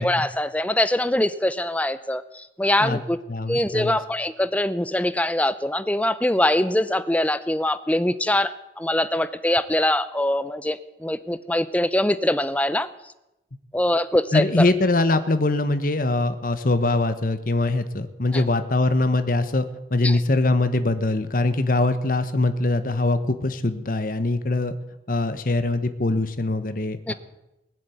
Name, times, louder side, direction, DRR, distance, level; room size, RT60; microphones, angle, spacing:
voice 1, 0.0-3.2 3.5-12.9 13.7-14.7 18.3-18.4 20.0-20.2 27.1-27.2, left 1 dB, 10° left, 14 dB, 0.6 m, -23 dB
voice 2, 3.3-4.0 14.3-24.7 25.1-27.1, left 2 dB, 50° left, 11 dB, 1.2 m, -22 dB
20.5 x 7.5 x 9.3 m, 0.94 s
head